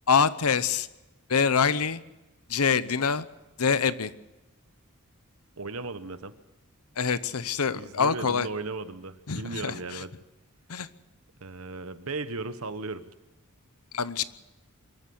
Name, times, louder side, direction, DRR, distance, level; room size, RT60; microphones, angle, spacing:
voice 1, 0.1-0.9 1.3-2.0 2.5-3.3 3.6-4.1 7.0-8.5 9.3-10.0 10.7-10.9 13.9-14.2, left 6 dB, 80° left, 15 dB, 0.9 m, -25 dB
voice 2, 5.6-6.3 7.7-10.1 11.4-13.0, right 3 dB, 65° right, 11 dB, 1.2 m, -36 dB
24.0 x 14.0 x 8.0 m, 1.0 s
head